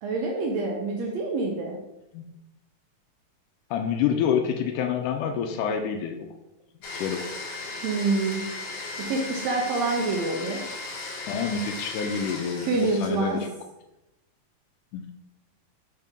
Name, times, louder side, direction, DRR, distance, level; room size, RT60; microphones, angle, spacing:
voice 1, 0.0-1.8 7.8-8.5 9.0-10.7 12.6-13.4, right 3 dB, 75° right, 1 dB, 1.6 m, -27 dB
voice 2, 3.7-6.3 6.9-7.3 11.3-13.5 14.9-15.1, left 7 dB, 80° left, 5 dB, 2.0 m, -27 dB
Domestic sounds home sounds, 6.8-13.5, left 3 dB, 65° left, 2.5 m, -36 dB
5.5 x 5.3 x 3.5 m, 0.95 s
omnidirectional pair, 3.8 m